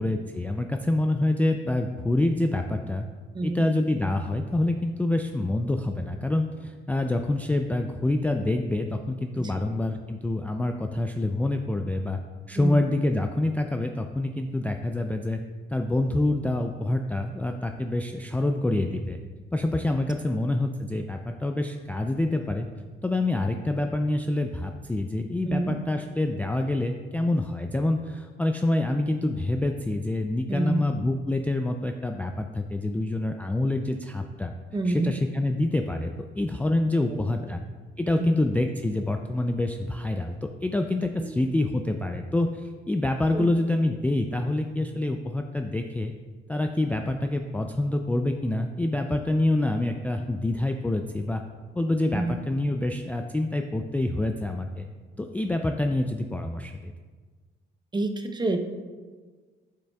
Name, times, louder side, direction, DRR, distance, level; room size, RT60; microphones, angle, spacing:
voice 1, 0.0-3.1 3.4-12.2 12.5-15.4 15.7-19.2 19.5-22.7 23.0-34.5 34.9-37.6 38.0-40.4 40.6-46.1 46.5-51.4 51.8-54.9 55.2-56.9, left 2 dB, 10° left, 4 dB, 0.3 m, -26 dB
voice 2, 3.3-3.7 9.4-9.6 12.6-12.8 20.3-20.4 25.4-25.8 30.5-30.9 34.7-35.1 37.0-37.2 37.5-37.6 38.2-38.4 41.2-41.3 43.3-43.5 52.1-52.4 57.9-58.6, right 2 dB, 20° right, 6 dB, 0.7 m, -28 dB
8.2 x 6.5 x 2.3 m, 1.4 s
cardioid pair, 90°, 20 cm